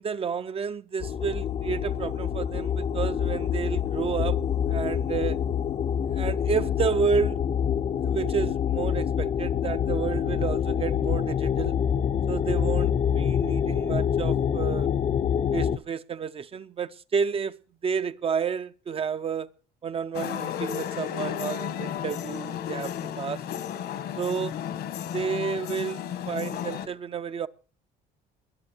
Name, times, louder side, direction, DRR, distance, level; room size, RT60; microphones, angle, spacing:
voice 1, 0.0-4.4 4.7-5.4 6.1-7.4 8.0-11.7 12.3-14.9 15.5-17.6 17.8-19.5 19.8-23.4 24.2-24.6 25.1-27.5, right 6 dB, 35° right, 0.5 m, -30 dB
sound 1, 1.0-15.8, left 8 dB, 40° left, 0.6 m, -26 dB
sound 2, 20.1-26.9, left 9 dB, 70° left, 1.4 m, -33 dB
21.5 x 7.6 x 4.4 m
cardioid pair, 110°, 17 cm